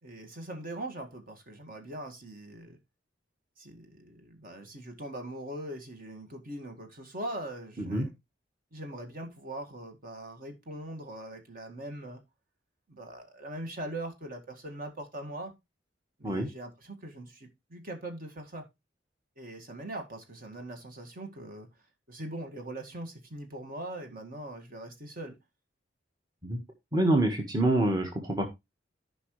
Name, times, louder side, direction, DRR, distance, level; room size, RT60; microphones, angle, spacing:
voice 1, 0.0-2.8 3.6-8.1 8.7-12.2 12.9-15.5 16.2-18.6 19.4-21.7 22.1-25.4, right 1 dB, 50° right, 5 dB, 1.9 m, -41 dB
voice 2, 26.9-28.5, right 1 dB, 20° right, 3 dB, 1.5 m, -26 dB
14.0 x 5.3 x 3.2 m, 0.22 s
head